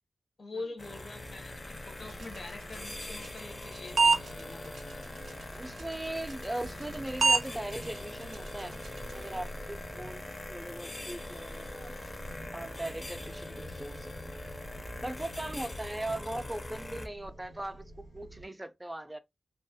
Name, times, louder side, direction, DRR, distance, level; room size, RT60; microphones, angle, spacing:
voice 1, 0.4-5.3 16.1-16.4, left 3 dB, 65° left, 0.7 m, -45 dB
sound 1, 0.8-17.1, left 2 dB, 35° left, 0.5 m, -43 dB
sound 2, 1.2-18.5, equal, 85° left, 1.1 m, -49 dB
sound 3, 2.0-9.3, right 4 dB, 85° right, 0.4 m, -33 dB
voice 2, 5.5-8.8 9.1-12.2 12.5-14.1 15.0-19.2, right 1 dB, 15° right, 0.4 m, -39 dB
2.3 x 2.0 x 2.7 m
cardioid pair, 55°, 0 cm